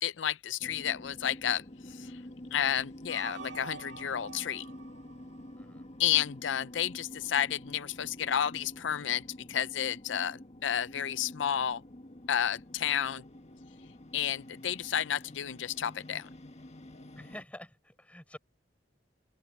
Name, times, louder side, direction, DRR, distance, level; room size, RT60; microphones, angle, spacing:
voice 1, 0.0-2.1 2.5-4.6 6.0-9.2 9.5-11.8 12.3-13.2 14.1-16.3, left 9 dB, 85° left, 0.5 m, -31 dB
sound 1, 0.6-17.4, left 1 dB, 35° left, 1.6 m, -48 dB
sound 2, 3.1-6.2, right 5 dB, 75° right, 2.0 m, -48 dB
voice 2, 17.2-18.4, left 1 dB, 10° left, 4.9 m, -48 dB
open air
head